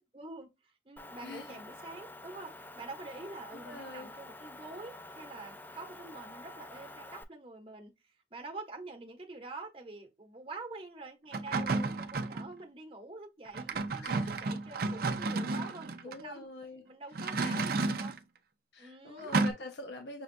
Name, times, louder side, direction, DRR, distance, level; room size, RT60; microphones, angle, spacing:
voice 1, 0.0-16.5 16.8-18.1 18.8-19.4, right 3 dB, 30° right, 1.0 m, -47 dB
Motor vehicle (road) / Engine, 1.0-7.2, left 2 dB, 10° left, 0.4 m, -48 dB
voice 2, 1.2-1.6 3.5-4.1 11.4-11.9 14.0-14.3 16.0-16.8 17.1-17.7 18.7-20.2, left 2 dB, 65° left, 0.7 m, -45 dB
sound 1, 11.3-12.5 13.5-16.2 17.1-18.2 19.3-19.5, right 3 dB, 55° right, 0.5 m, -32 dB
6.2 x 2.3 x 2.5 m
head